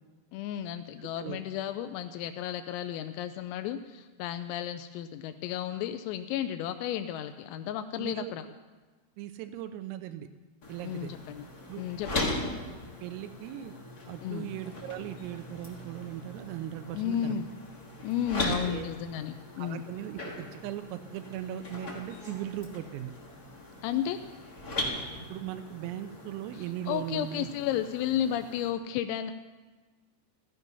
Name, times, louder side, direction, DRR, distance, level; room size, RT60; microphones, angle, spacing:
voice 1, 0.3-8.5 10.8-11.4 11.8-12.3 14.2-14.5 16.9-17.5 18.0-19.8 23.8-24.2 26.5-29.3, left 10 dB, 90° left, 9 dB, 3.4 m, -33 dB
voice 2, 1.0-1.4 8.0-8.3 9.2-10.3 10.7-11.1 11.7-11.8 12.3-12.4 13.0-13.7 14.1-17.4 18.5-18.9 19.6-23.1 25.1-27.5, right 11 dB, 90° right, 9 dB, 3.5 m, -38 dB
sound 1, 10.6-28.7, left 2 dB, 30° left, 1.8 m, -39 dB
17.0 x 15.0 x 5.5 m, 1.3 s
omnidirectional pair, 5.9 m